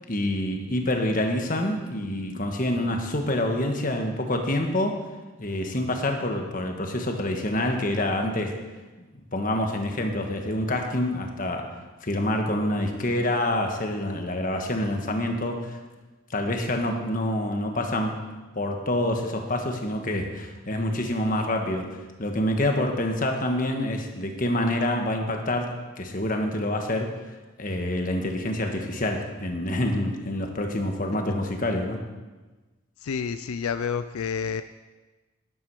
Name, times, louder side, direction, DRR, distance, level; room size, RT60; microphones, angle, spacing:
voice 1, 0.1-5.0 5.4-8.6 9.1-11.8 12.0-15.8 16.3-18.2 18.5-21.9 22.2-27.2 27.6-32.0, left 1 dB, 40° left, 3 dB, 1.4 m, -27 dB
voice 2, 33.0-34.6, left 6 dB, 85° left, 11 dB, 0.4 m, -29 dB
12.0 x 11.0 x 4.8 m, 1.2 s
head